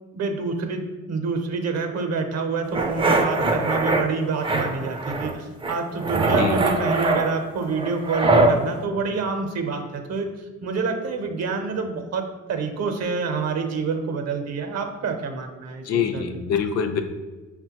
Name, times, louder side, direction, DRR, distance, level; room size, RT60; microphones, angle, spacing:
voice 1, 0.1-16.2, right 4 dB, 60° right, 5 dB, 0.6 m, -27 dB
sound 1, 2.7-4.0 4.4-5.3 5.6-8.6, right 2 dB, 20° right, 0.4 m, -22 dB
voice 2, 15.8-17.0, left 7 dB, 60° left, 6 dB, 0.5 m, -24 dB
5.4 x 2.2 x 2.8 m, 1.3 s
cardioid pair, 90°, 30 cm